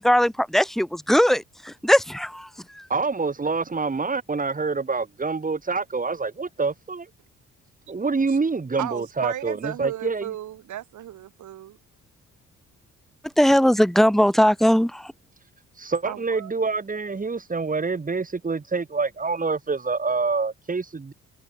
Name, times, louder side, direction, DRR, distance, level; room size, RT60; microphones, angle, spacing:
voice 1, 0.0-2.5 2.7-2.9 13.4-15.1, equal, ahead, 3.6 m, -19 dB
voice 2, 2.9-7.1 7.9-10.3 15.7-21.1, right 4 dB, 25° right, 4.5 m, -26 dB
voice 3, 8.8-11.8 16.1-16.5, right 12 dB, 75° right, 4.1 m, -35 dB
cardioid pair, 90°, 30 cm